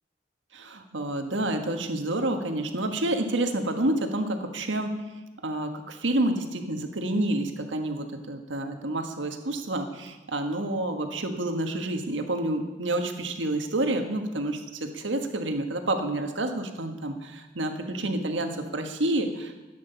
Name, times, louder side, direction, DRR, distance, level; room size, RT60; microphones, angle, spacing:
voice 1, 0.5-5.0 5.4-19.5, right 1 dB, 85° right, 6 dB, 1.5 m, -29 dB
13.5 x 9.5 x 6.9 m, 1.2 s
head